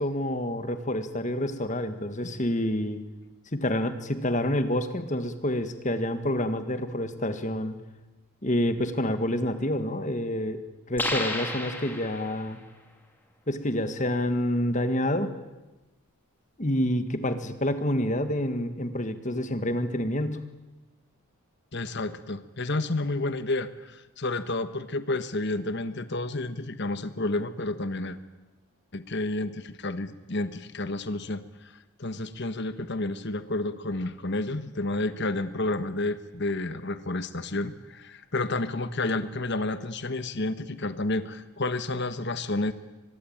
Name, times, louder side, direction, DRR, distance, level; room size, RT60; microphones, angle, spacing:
voice 1, 0.0-3.0 3.5-7.8 8.4-10.6 10.9-12.6 13.5-15.3 16.6-20.4, left 1 dB, 35° left, 10 dB, 1.7 m, -28 dB
sound 1, 11.0-12.5, left 2 dB, 10° left, 2.9 m, -32 dB
voice 2, 21.7-28.2 28.9-31.7 32.0-42.7, left 2 dB, 50° left, 12 dB, 1.3 m, -30 dB
24.0 x 21.5 x 8.8 m, 1.1 s
head